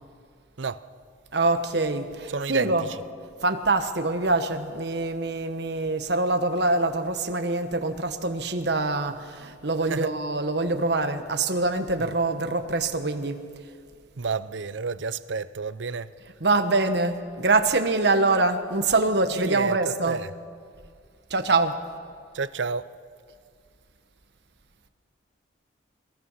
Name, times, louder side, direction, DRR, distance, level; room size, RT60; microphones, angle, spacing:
voice 1, 0.6-0.9 2.3-3.0 9.8-10.1 12.0-12.1 14.2-16.1 19.3-20.4 22.3-22.9, right 5 dB, 80° right, 0.7 m, -31 dB
voice 2, 1.3-2.9 3.4-13.4 16.4-20.2 21.3-21.8, right 3 dB, 60° right, 1.3 m, -24 dB
24.0 x 19.0 x 5.7 m
head